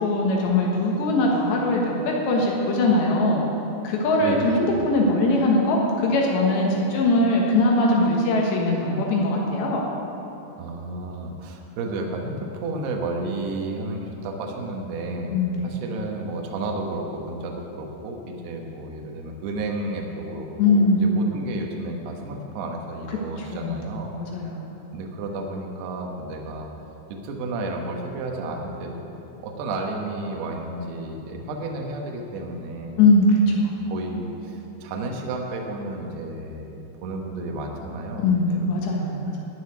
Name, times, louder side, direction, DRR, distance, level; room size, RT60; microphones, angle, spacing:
voice 1, 0.0-3.4 3.8-9.8 15.3-15.7 20.6-21.1 23.4-23.8 24.1-24.7 33.0-33.5 38.2-39.3, left 2 dB, 70° left, -1 dB, 3.4 m, -21 dB
voice 2, 4.2-4.8 10.6-15.4 15.6-24.1 24.9-26.7 27.1-29.1 29.4-33.0 33.4-33.6 33.9-38.6, right 2 dB, 70° right, 1 dB, 2.9 m, -32 dB
14.0 x 6.5 x 9.8 m, 2.9 s
omnidirectional pair, 5.5 m